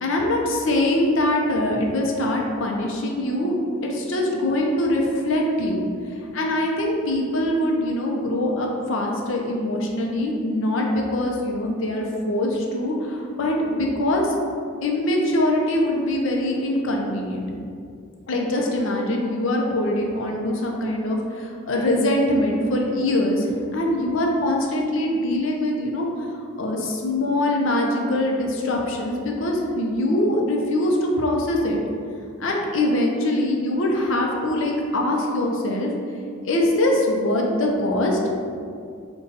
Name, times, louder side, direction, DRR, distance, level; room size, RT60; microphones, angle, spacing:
voice 1, 0.0-3.5 3.8-5.8 6.3-14.3 14.8-17.4 18.3-23.5 23.7-26.1 26.6-31.8 32.4-35.9 36.5-38.2, left 1 dB, 70° left, 0 dB, 0.5 m, -23 dB
3.9 x 2.3 x 3.9 m, 2.4 s
head